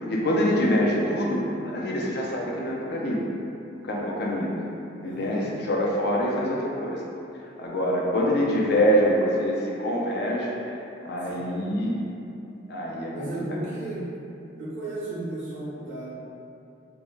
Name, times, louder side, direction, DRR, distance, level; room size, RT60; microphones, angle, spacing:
voice 1, 0.0-3.2 3.8-4.5 5.0-7.0 7.6-10.6 11.0-12.0 12.7-13.3, equal, 55° left, -3 dB, 0.4 m, -25 dB
voice 2, 5.0-5.5 11.2-11.7 13.1-14.0 14.6-16.1, right 1 dB, 75° right, -9 dB, 0.6 m, -34 dB
2.2 x 2.0 x 3.0 m, 2.7 s
head